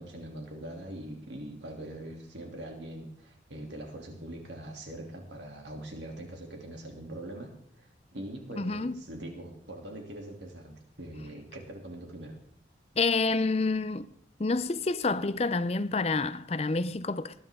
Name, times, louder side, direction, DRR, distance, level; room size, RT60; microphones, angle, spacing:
voice 1, 0.0-12.4, right 1 dB, 75° right, 2.9 m, -42 dB
voice 2, 8.6-9.0 13.0-14.1 14.4-17.3, left 3 dB, 35° left, 0.5 m, -28 dB
20.5 x 11.0 x 3.7 m
head